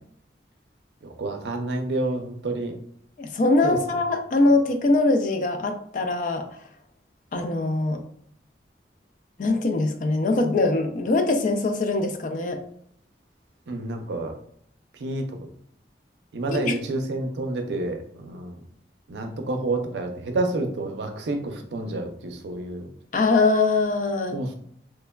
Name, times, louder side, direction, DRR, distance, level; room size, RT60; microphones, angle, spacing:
voice 1, 1.0-2.7 3.6-3.8 13.7-14.3 15.0-15.3 16.3-18.6 19.1-22.9 24.3-24.5, right 2 dB, 80° right, 5 dB, 0.5 m, -29 dB
voice 2, 3.2-6.5 7.3-8.0 9.4-12.6 16.5-16.7 23.1-24.4, left 2 dB, 45° left, 5 dB, 0.3 m, -22 dB
3.1 x 2.1 x 2.2 m, 0.65 s
head